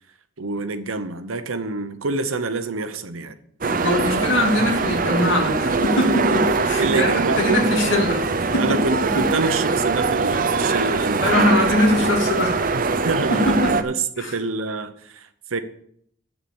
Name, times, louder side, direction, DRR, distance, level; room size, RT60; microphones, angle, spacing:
voice 1, 0.4-3.4 4.1-4.3 5.1-5.3 5.6-5.7 6.8-7.6 8.6-11.7 12.7-13.5 13.8-15.6, right 3 dB, 85° right, 0.9 m, -27 dB
sound 1, 3.6-13.8, right 4 dB, 40° right, 0.6 m, -22 dB
voice 2, 3.7-7.1 7.4-8.8 9.2-9.3 11.2-12.7 13.3-13.9 14.2-14.3, left 1 dB, 65° left, 2.5 m, -22 dB
8.1 x 7.3 x 7.0 m
head